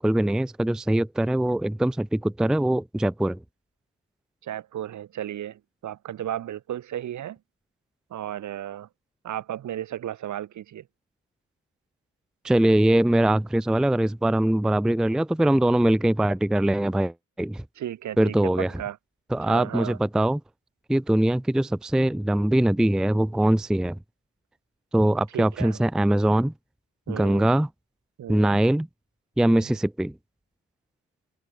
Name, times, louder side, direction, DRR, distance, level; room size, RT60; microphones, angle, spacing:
voice 1, 0.0-3.4 12.4-17.6 18.2-18.7 19.3-20.4 20.9-24.0 24.9-26.5 27.1-27.7 28.3-28.9 29.4-30.1, right 1 dB, ahead, 0.5 m, -22 dB
voice 2, 4.4-7.4 8.1-8.9 9.2-10.8 17.8-19.0 19.4-20.0 25.3-25.8 27.1-27.5 28.2-28.6 29.4-29.7, right 11 dB, 70° right, 5.7 m, -34 dB
cardioid pair, 90°, 30 cm